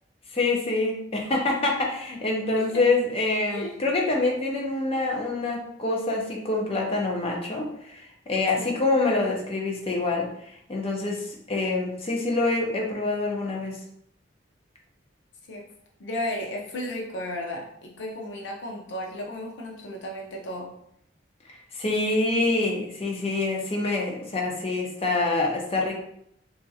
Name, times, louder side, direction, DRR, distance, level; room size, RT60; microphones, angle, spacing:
voice 1, 0.3-10.3 10.7-13.8 21.7-26.0, left 2 dB, 30° left, -1 dB, 0.6 m, -26 dB
voice 2, 16.0-20.7, left 1 dB, 75° left, -1 dB, 0.6 m, -34 dB
3.0 x 2.4 x 2.7 m, 0.72 s
head